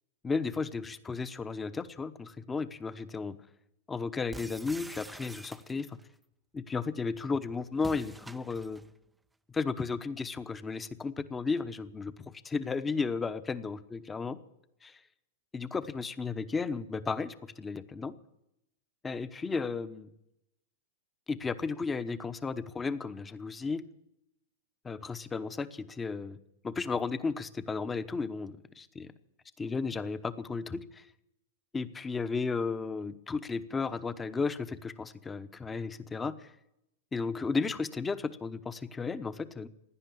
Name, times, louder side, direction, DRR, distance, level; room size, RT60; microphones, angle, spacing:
voice 1, 0.2-3.4 3.9-6.0 6.5-8.8 9.5-14.4 14.8-15.0 15.5-18.1 19.0-20.1 21.3-23.8 24.8-26.4 26.6-29.1 29.6-31.1 31.7-36.5 37.1-39.7, left 4 dB, 15° left, 12 dB, 1.0 m, -34 dB
sound 1, 4.3-6.0 7.8-8.9, right 2 dB, 5° right, 0.6 m, -47 dB
17.0 x 10.0 x 8.5 m, 0.83 s
hypercardioid pair, 130°, 0 cm